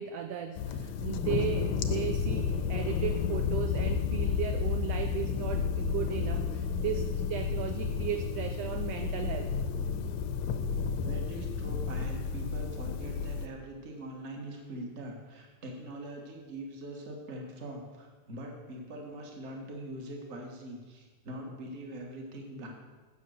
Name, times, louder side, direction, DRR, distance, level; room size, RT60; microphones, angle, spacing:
voice 1, 0.0-9.5, right 9 dB, 80° right, 7 dB, 1.4 m, -36 dB
sound 1, 0.6-13.5, left 6 dB, 80° left, 1.8 m, -31 dB
voice 2, 11.0-22.7, right 1 dB, 35° right, 1 dB, 1.2 m, -42 dB
9.3 x 7.0 x 6.4 m, 1.3 s
omnidirectional pair, 3.4 m